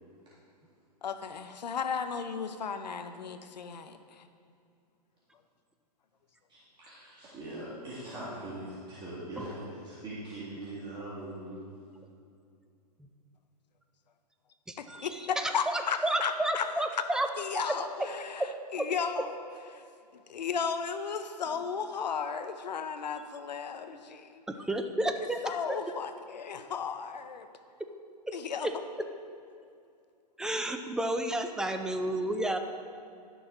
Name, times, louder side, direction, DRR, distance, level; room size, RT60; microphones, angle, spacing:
voice 1, 1.0-4.2 14.8-17.0 17.4-19.3 19.7-19.8 20.3-24.4 25.4-27.5 28.3-28.7, left 6 dB, 85° left, 9 dB, 0.6 m, -35 dB
voice 2, 6.5-11.6, right 1 dB, 20° right, -9 dB, 2.1 m, -41 dB
voice 3, 14.7-15.1 15.4-17.3 17.5-17.6 18.4-18.5 18.8-18.9 24.5-25.4 25.7-25.8 28.3-28.4 28.6-28.7 30.4-32.6, right 1 dB, 5° right, 6 dB, 0.3 m, -31 dB
11.5 x 6.3 x 3.8 m, 2.5 s
hypercardioid pair, 120°, 21 cm